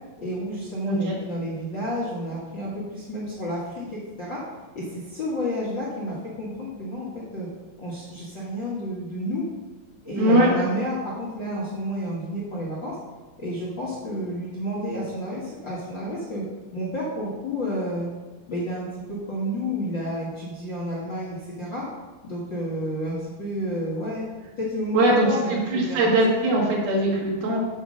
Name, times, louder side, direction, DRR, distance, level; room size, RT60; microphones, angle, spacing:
voice 1, 0.2-4.4 4.7-7.5 7.8-9.4 10.0-13.0 13.4-16.4 16.7-18.1 18.5-21.8 22.2-24.2 24.6-26.5, equal, 60° left, -5 dB, 1.2 m, -30 dB
voice 2, 10.2-10.5 24.9-27.6, right 1 dB, 85° right, -4 dB, 3.8 m, -21 dB
7.1 x 5.2 x 6.3 m, 1.3 s
omnidirectional pair, 4.2 m